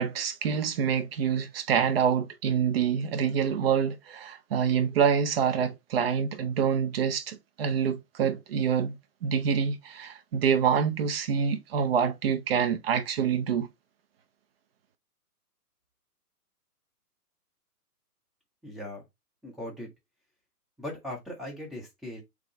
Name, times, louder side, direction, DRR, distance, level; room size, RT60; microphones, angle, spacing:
voice 1, 0.0-13.7, right 7 dB, 40° right, 0.8 m, -26 dB
voice 2, 18.6-19.0 19.4-19.9 20.8-22.2, left 1 dB, ahead, 1.0 m, -39 dB
3.8 x 3.3 x 4.2 m
figure-of-eight pair, 130°, 47 cm